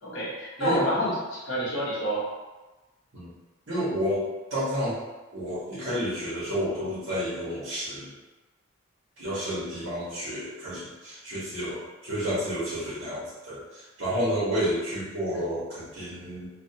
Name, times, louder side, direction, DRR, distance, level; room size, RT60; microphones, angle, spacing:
voice 1, 0.0-2.2, equal, 65° left, -6 dB, 0.9 m, -28 dB
voice 2, 0.6-1.1 3.1-3.3 3.7-4.2 4.5-5.0 5.3-8.1 9.2-16.5, equal, 65° right, -11 dB, 1.1 m, -30 dB
2.6 x 2.1 x 2.7 m, 1.1 s
head